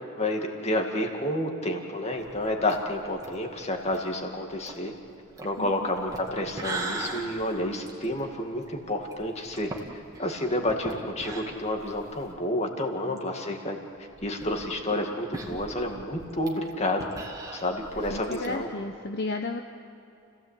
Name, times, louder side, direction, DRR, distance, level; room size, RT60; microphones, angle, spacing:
voice 1, 0.2-4.9 5.4-13.8 14.2-17.1 17.5-18.7, left 1 dB, 30° left, 3 dB, 2.3 m, -30 dB
sound 1, 2.2-12.4 12.8-12.9 13.2-13.3 14.0-18.5, right 2 dB, 15° right, 2.0 m, -40 dB
voice 2, 5.6-5.9 13.1-13.2 17.9-19.6, left 2 dB, 50° left, 4 dB, 0.9 m, -34 dB
30.0 x 16.5 x 8.5 m, 2.8 s
head